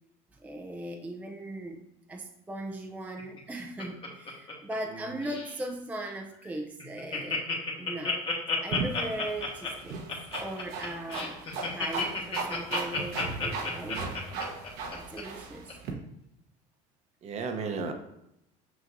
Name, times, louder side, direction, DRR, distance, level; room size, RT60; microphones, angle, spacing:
voice 1, 0.3-1.8 2.1-7.5 7.8-8.2 8.6-10.0 10.4-11.4 11.7-14.0 14.9-15.8, right 1 dB, 10° right, 2 dB, 0.5 m, -38 dB
Laughter, 3.2-4.9 5.2-5.6 6.1-6.2 6.4-6.5 6.8-15.2 15.7-15.8, left 4 dB, 35° left, 1.4 m, -32 dB
voice 2, 4.9-5.2 13.8-14.1 17.2-17.9, right 4 dB, 40° right, 6 dB, 0.8 m, -35 dB
sound 1, 8.7-15.9, right 4 dB, 70° right, 1.1 m, -37 dB
6.3 x 5.8 x 2.6 m, 0.82 s
cardioid pair, 115°, 16 cm